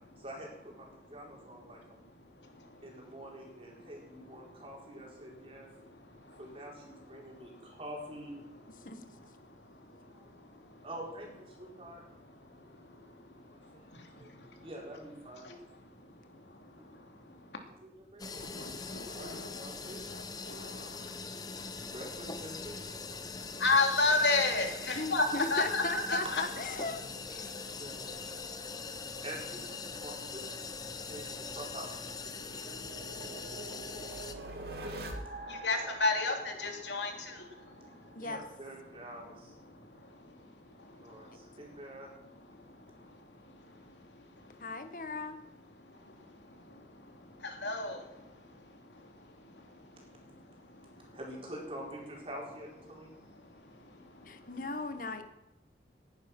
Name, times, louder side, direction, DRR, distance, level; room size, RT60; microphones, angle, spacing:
voice 1, 0.2-2.0 2.8-5.7 6.4-8.4 10.1-10.3 10.8-12.0 13.4-15.5 16.8-16.9 17.7-20.1 21.8-23.4 25.0-25.1 26.2-26.3 27.3-28.4 29.2-32.2 33.3-33.4 38.2-39.5 40.9-42.1 51.1-53.2, right 1 dB, 30° right, -2 dB, 4.5 m, -47 dB
sound 1, 18.2-34.3, left 4 dB, 20° left, 1.0 m, -42 dB
voice 2, 18.6-19.5 20.5-20.6 23.6-26.4 35.6-37.1 47.6-48.0, left 3 dB, 85° left, 4 dB, 2.9 m, -29 dB
voice 3, 24.9-27.0 27.3-27.5 38.1-38.4 44.6-45.5 54.2-55.2, left 3 dB, 50° left, 8 dB, 1.5 m, -37 dB
sound 2, 31.1-37.9, right 1 dB, 60° right, 2.4 m, -45 dB
19.0 x 10.5 x 6.1 m, 0.93 s
head